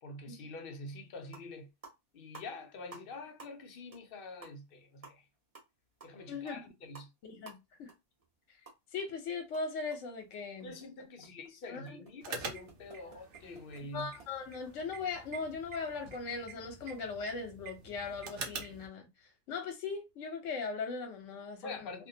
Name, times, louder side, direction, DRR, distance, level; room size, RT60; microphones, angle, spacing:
voice 1, 0.0-1.7 2.1-5.2 6.0-7.1 10.6-14.1 21.6-22.1, left 2 dB, 55° left, 0.7 m, -46 dB
sound 1, 0.9-1.0 1.2-1.5 1.8-3.1 3.4-3.7 3.9-4.1 4.4-9.1 9.4-14.3, right 3 dB, 35° right, 0.8 m, -55 dB
voice 2, 6.3-6.6 7.2-7.9 8.9-10.7 11.7-12.0 13.9-19.1 19.5-21.9, left 4 dB, 75° left, 1.0 m, -39 dB
sound 2, 12.2-18.9, right 4 dB, 70° right, 0.9 m, -46 dB
2.5 x 2.1 x 2.7 m
omnidirectional pair, 1.3 m